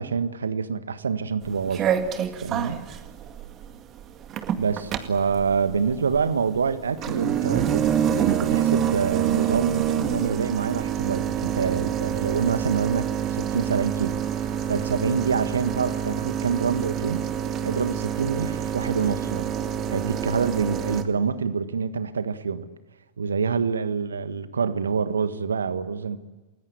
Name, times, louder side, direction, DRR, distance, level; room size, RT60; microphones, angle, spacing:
voice 1, 0.0-1.9 2.4-2.8 4.6-14.2 14.7-17.3 17.6-19.5 19.9-22.7 23.2-26.2, right 6 dB, 70° right, 1.5 m, -26 dB
sound 1, 1.4-21.0, right 9 dB, 30° right, 2.0 m, -27 dB
29.5 x 20.5 x 8.3 m
figure-of-eight pair, 90°, 0 cm